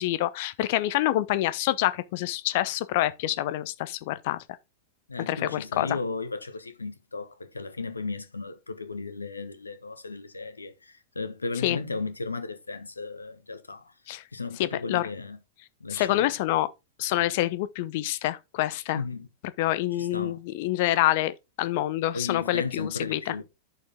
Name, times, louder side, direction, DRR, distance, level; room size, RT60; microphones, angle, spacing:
voice 1, 0.0-4.4 5.3-5.9 11.6-11.8 14.1-14.2 14.6-15.1 15.9-16.7 17.0-19.0 19.6-23.3, left 15 dB, 50° left, 0.8 m, -27 dB
voice 2, 5.1-13.9 14.3-15.4 15.8-16.3 18.9-19.3 20.0-20.4 22.1-23.4, left 4 dB, 80° left, 1.2 m, -35 dB
9.2 x 6.7 x 3.6 m
figure-of-eight pair, 90°, 0 cm